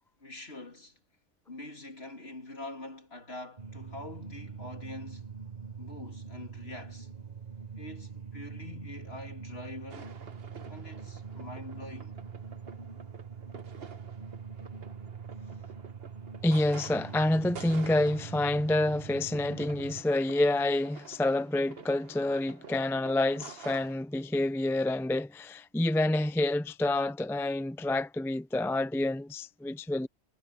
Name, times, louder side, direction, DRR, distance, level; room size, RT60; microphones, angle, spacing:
voice 1, 0.2-1.0 1.5-5.3 5.8-7.1 7.8-10.1 10.7-12.2, left 2 dB, 65° left, 3.5 m, -44 dB
sound 1, 3.6-20.0, right 6 dB, 40° right, 1.4 m, -44 dB
sound 2, 9.9-23.9, right 5 dB, 60° right, 1.4 m, -49 dB
voice 2, 16.4-30.1, left 2 dB, 5° left, 0.4 m, -28 dB
omnidirectional pair, 1.1 m